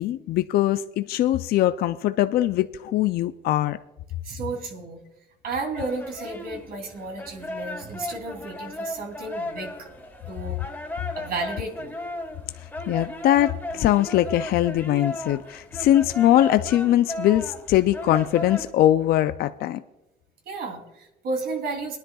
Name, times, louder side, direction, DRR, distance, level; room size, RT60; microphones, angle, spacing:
voice 1, 0.0-3.8 12.6-19.8, left 13 dB, 65° left, 11 dB, 0.4 m, -21 dB
voice 2, 4.2-5.0 5.4-9.9 10.3-10.6 11.2-12.0 20.4-22.0, right 3 dB, 65° right, 2 dB, 3.0 m, -33 dB
sound 1, 5.7-18.7, left 1 dB, 10° left, 2.4 m, -36 dB
22.0 x 10.5 x 2.3 m, 0.99 s
cardioid pair, 110°, 17 cm